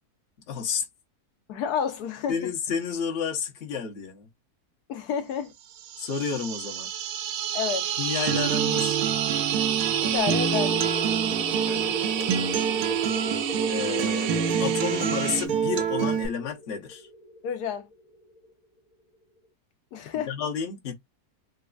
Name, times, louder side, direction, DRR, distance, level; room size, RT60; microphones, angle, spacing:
voice 1, 0.5-0.8 2.3-4.3 6.0-6.9 8.0-9.0 11.5-12.4 13.7-14.3 14.6-17.1 20.2-20.9, left 7 dB, 50° left, 1.1 m, -31 dB
voice 2, 1.5-2.5 4.9-5.5 7.5-7.9 10.0-10.8 17.4-17.9 19.9-20.3, left 8 dB, 80° left, 1.2 m, -30 dB
sound 1, 5.7-15.5, right 10 dB, 70° right, 0.9 m, -30 dB
Acoustic guitar, 8.3-16.3, right 7 dB, 90° right, 1.2 m, -27 dB
sound 2, 10.2-18.5, equal, 25° left, 0.8 m, -37 dB
4.1 x 2.3 x 2.3 m
omnidirectional pair, 1.7 m